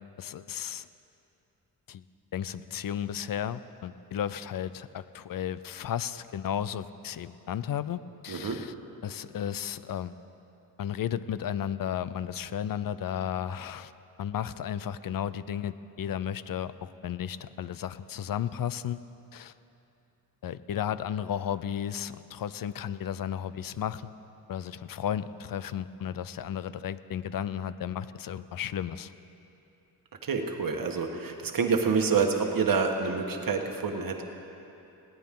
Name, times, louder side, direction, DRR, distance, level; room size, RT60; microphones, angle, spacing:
voice 1, 0.2-0.9 1.9-2.0 2.3-8.7 9.0-10.2 10.8-13.9 14.2-19.0 19.3-19.5 20.4-24.1 24.5-29.1, left 9 dB, 60° left, 15 dB, 0.6 m, -34 dB
voice 2, 8.3-8.7 30.2-34.2, right 5 dB, 55° right, 3 dB, 1.5 m, -27 dB
20.5 x 17.5 x 3.8 m, 2.9 s
cardioid pair, 90°, 40 cm